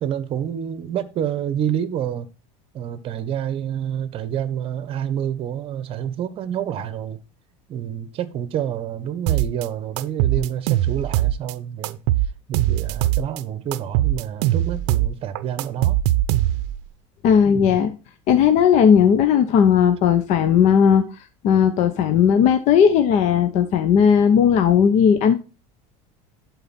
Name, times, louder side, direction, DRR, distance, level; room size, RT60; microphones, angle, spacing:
voice 1, 0.0-2.3 2.7-7.2 7.7-12.0 12.5-16.0 17.5-17.8, right 9 dB, 35° right, 0.9 m, -28 dB
sound 1, 9.3-9.7 10.0-11.5 11.8-13.4 13.7-16.8, right 13 dB, 70° right, 0.6 m, -21 dB
voice 2, 17.2-17.9 18.3-21.0 21.4-25.4, left 7 dB, 50° left, 0.8 m, -16 dB
11.5 x 4.1 x 4.1 m
supercardioid pair, 140°, 15 cm